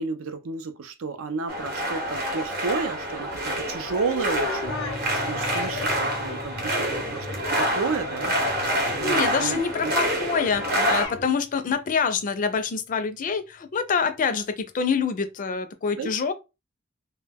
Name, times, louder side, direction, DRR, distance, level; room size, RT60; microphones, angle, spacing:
voice 1, 0.0-7.3 7.5-9.9 10.8-10.9 11.3-11.4 16.0-16.1, right 4 dB, 75° right, 0.4 m, -32 dB
sound 1, 1.5-11.1, equal, 50° right, 0.8 m, -27 dB
sound 2, 3.3-11.3, left 4 dB, 85° left, 0.6 m, -37 dB
sound 3, 4.7-12.6, left 1 dB, 15° right, 0.5 m, -42 dB
voice 2, 9.0-16.3, left 5 dB, 40° left, 0.4 m, -26 dB
2.2 x 2.1 x 3.3 m
head